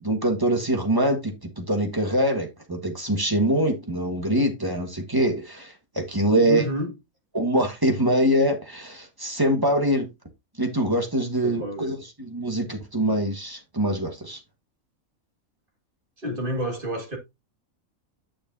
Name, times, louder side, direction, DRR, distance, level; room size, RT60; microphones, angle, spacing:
voice 1, 0.0-6.6 7.3-10.1 10.6-14.4, right 1 dB, 15° right, 1.4 m, -24 dB
voice 2, 6.5-6.9 11.4-11.9 16.2-17.2, equal, 40° right, 2.1 m, -29 dB
9.6 x 6.6 x 2.7 m
omnidirectional pair, 1.4 m